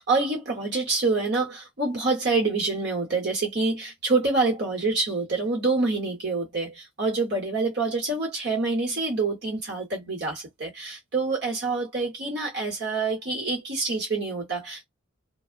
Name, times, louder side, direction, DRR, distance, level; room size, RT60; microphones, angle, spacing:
voice 1, 0.0-14.8, right 3 dB, 50° right, 0.9 m, -26 dB
3.4 x 2.0 x 2.4 m
head